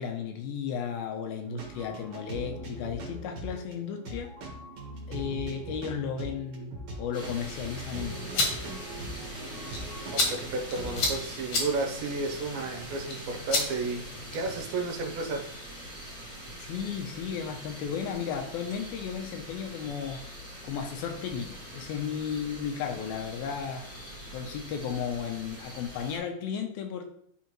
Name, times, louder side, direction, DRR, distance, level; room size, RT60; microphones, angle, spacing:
voice 1, 0.0-4.3 5.1-8.5 16.7-20.2 20.6-23.8 24.3-27.0, left 7 dB, 80° left, 5 dB, 2.5 m, -34 dB
sound 1, 1.4-11.1, right 1 dB, 55° right, 2.6 m, -40 dB
sound 2, 7.1-26.2, equal, 5° left, 0.8 m, -43 dB
sound 3, 8.1-14.6, left 2 dB, 60° left, 1.9 m, -33 dB
voice 2, 10.3-14.0 14.3-15.4, right 3 dB, 75° right, 3 dB, 2.7 m, -32 dB
11.0 x 3.7 x 3.0 m, 0.68 s
omnidirectional pair, 4.4 m